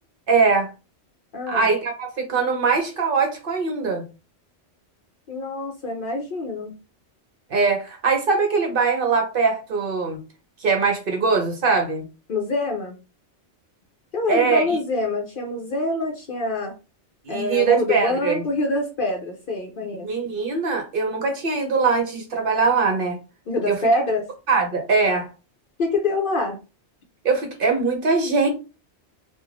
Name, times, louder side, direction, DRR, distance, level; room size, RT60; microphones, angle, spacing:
voice 1, 0.3-0.7 1.5-4.0 7.5-10.2 10.6-12.0 14.3-14.8 17.2-18.4 20.0-23.2 23.7-23.8 24.5-25.3 27.2-28.5, right 4 dB, 55° right, 3 dB, 0.8 m, -21 dB
voice 2, 1.3-1.7 5.3-6.7 12.3-12.9 14.1-16.7 17.3-20.1 23.5-24.3 25.8-26.6, left 2 dB, 60° left, 3 dB, 0.6 m, -25 dB
2.4 x 2.3 x 3.1 m, 0.31 s
omnidirectional pair, 1.2 m